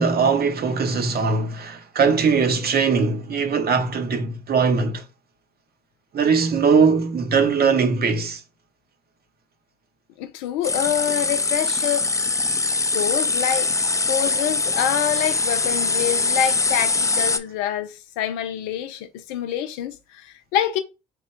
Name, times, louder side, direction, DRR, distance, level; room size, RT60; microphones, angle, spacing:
voice 1, 0.0-5.0 6.1-8.4, right 5 dB, 50° right, 0.9 m, -20 dB
voice 2, 10.2-12.1 12.9-13.7 14.1-20.8, left 10 dB, 85° left, 0.6 m, -26 dB
sound 1, 10.6-17.4, left 3 dB, 15° left, 0.5 m, -22 dB
3.4 x 2.2 x 4.3 m
hypercardioid pair, 50°, 20 cm